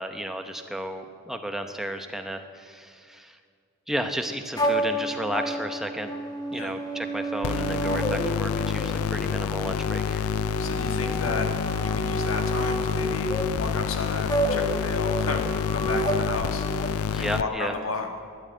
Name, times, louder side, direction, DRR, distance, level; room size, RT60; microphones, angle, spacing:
voice 1, 0.0-3.4 3.9-6.1 6.5-10.3 17.1-17.7, equal, ahead, 5 dB, 0.8 m, -33 dB
sound 1, 4.6-16.9, right 1 dB, 20° left, 1.5 m, -30 dB
sound 2, 7.4-17.4, left 7 dB, 85° left, 0.4 m, -28 dB
voice 2, 10.6-11.5 11.8-18.1, left 3 dB, 70° left, 4 dB, 1.5 m, -33 dB
12.5 x 9.9 x 9.0 m, 2.3 s
head